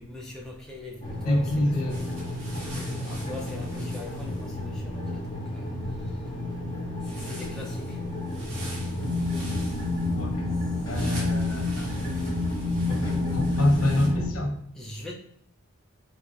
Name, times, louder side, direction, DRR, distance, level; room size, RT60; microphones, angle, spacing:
voice 1, 0.0-2.3 3.0-5.7 7.1-8.0 10.9-11.7 14.7-15.1, left 1 dB, 5° left, 0.6 m, -42 dB
sound 1, 1.0-14.3, left 2 dB, 20° left, 1.0 m, -30 dB
voice 2, 1.2-2.0 2.5-3.4 10.1-10.5 10.9-12.0 12.8-14.6, left 1 dB, 90° left, 1.0 m, -27 dB
sound 2, 1.9-4.5 7.0-14.1, right 1 dB, 60° right, 1.3 m, -46 dB
4.6 x 3.4 x 2.5 m
head